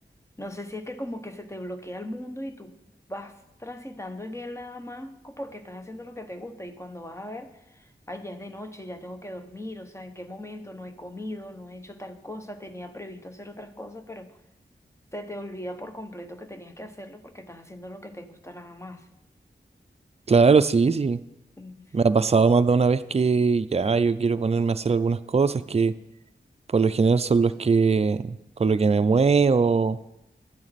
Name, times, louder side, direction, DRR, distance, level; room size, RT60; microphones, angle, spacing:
voice 1, 0.4-2.7 3.1-14.4 15.1-19.1 21.6-22.4, left 1 dB, 15° left, 7 dB, 0.8 m, -39 dB
voice 2, 20.3-21.2 21.9-25.9 26.7-30.0, right 4 dB, 35° right, 12 dB, 0.4 m, -21 dB
11.5 x 7.5 x 4.2 m, 0.89 s
cardioid pair, 45°, 19 cm